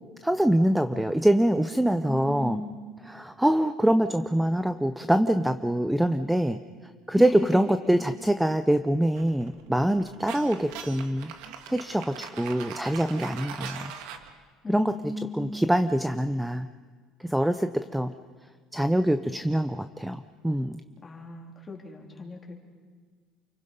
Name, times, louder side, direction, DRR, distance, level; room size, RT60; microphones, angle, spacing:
voice 1, 0.2-2.6 3.1-6.6 7.1-11.3 11.7-13.9 14.7-14.9 15.4-16.7 17.2-18.1 18.7-20.8, right 1 dB, 5° right, 10 dB, 0.6 m, -24 dB
voice 2, 2.1-2.8 7.1-7.5 13.4-13.7 14.6-15.6 21.0-22.5, left 2 dB, 20° left, 0 dB, 3.5 m, -37 dB
sound 1, 9.2-14.3, right 8 dB, 75° right, 1.9 m, -41 dB
29.0 x 23.5 x 5.4 m, 1.5 s
cardioid pair, 145°, 0 cm